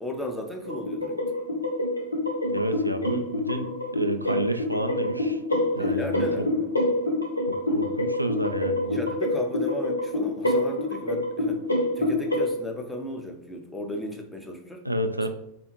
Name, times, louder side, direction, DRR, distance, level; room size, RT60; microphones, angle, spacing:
voice 1, 0.0-1.2 5.7-6.7 8.9-11.6 12.0-14.9, left 1 dB, 5° left, 2 dB, 0.7 m, -35 dB
sound 1, 0.6-12.5, left 1 dB, 80° left, 0.8 m, -27 dB
voice 2, 2.5-5.4 5.7-6.3 7.5-9.0 14.8-15.3, right 1 dB, 90° right, 6 dB, 0.3 m, -30 dB
5.3 x 2.5 x 2.9 m, 0.75 s
figure-of-eight pair, 90°, 0 cm